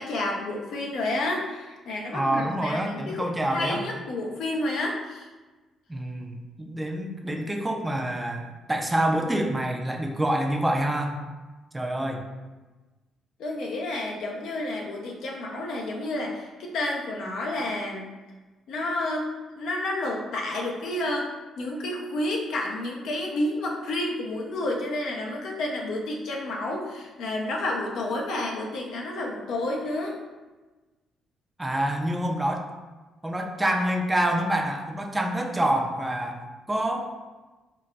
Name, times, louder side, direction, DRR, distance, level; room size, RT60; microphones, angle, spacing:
voice 1, 0.0-5.3 13.4-18.0 18.7-19.3 19.6-21.3 21.6-30.1, left 1 dB, 75° left, 0 dB, 0.5 m, -30 dB
voice 2, 2.1-3.8 5.9-8.4 8.7-11.2 11.7-12.2 31.6-32.7 33.2-37.2, right 1 dB, 15° right, 2 dB, 0.4 m, -27 dB
3.9 x 2.2 x 2.3 m, 1.2 s
cardioid pair, 90°, 0 cm